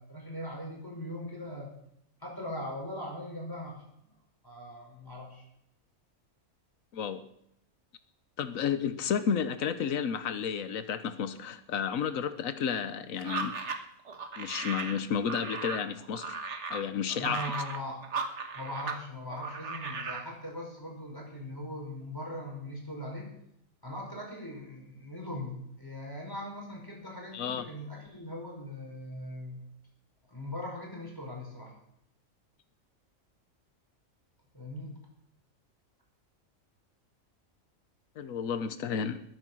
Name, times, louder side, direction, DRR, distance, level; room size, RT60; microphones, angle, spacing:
voice 1, 0.0-1.7 2.2-3.8 4.4-5.4 17.2-18.1 18.5-23.3 23.8-29.6 30.3-31.7 34.5-34.9, left 1 dB, 15° left, 0 dB, 5.2 m, -40 dB
voice 2, 6.9-7.3 8.4-13.6 14.4-16.4 16.7-17.4 27.3-27.7 38.2-39.2, left 7 dB, 85° left, 11 dB, 1.3 m, -32 dB
sound 1, 13.2-19.0 19.3-20.3, right 4 dB, 60° right, 1.7 m, -37 dB
21.5 x 9.8 x 6.3 m, 0.75 s
omnidirectional pair, 1.4 m